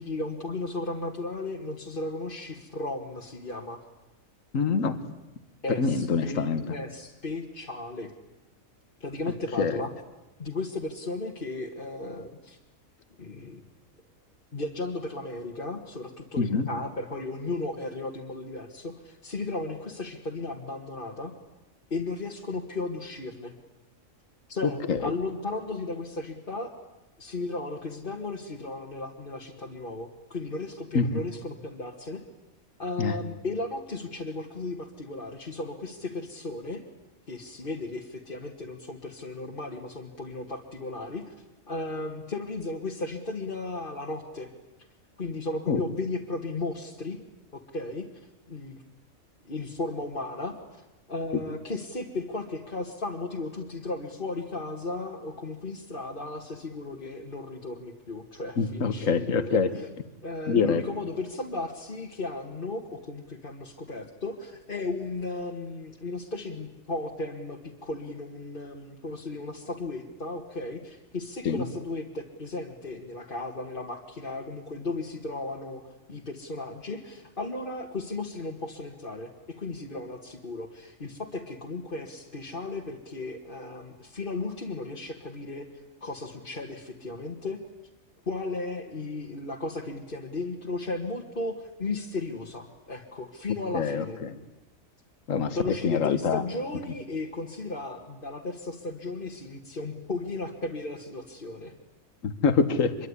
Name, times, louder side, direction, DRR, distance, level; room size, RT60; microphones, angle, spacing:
voice 1, 0.0-3.8 5.6-8.1 9.0-9.9 10.4-12.6 13.2-13.6 14.5-21.3 21.9-23.5 24.5-26.7 27.2-32.2 32.8-36.8 37.3-41.3 41.7-44.5 45.2-47.2 47.5-48.1 48.5-48.8 49.5-50.8 51.1-59.9 60.2-85.7 86.0-87.6 88.3-94.2 95.6-101.7, left 2 dB, 40° left, -1 dB, 2.0 m, -35 dB
voice 2, 4.5-5.0 5.8-6.6 9.6-9.8 16.4-16.7 24.9-25.1 30.9-31.1 33.0-33.2 45.7-45.8 58.6-59.7 60.5-60.8 71.4-71.6 93.7-94.4 95.3-95.6 95.8-96.4 102.2-103.0, left 5 dB, 70° left, 12 dB, 1.8 m, -25 dB
25.0 x 23.0 x 9.8 m, 1.0 s
omnidirectional pair, 1.4 m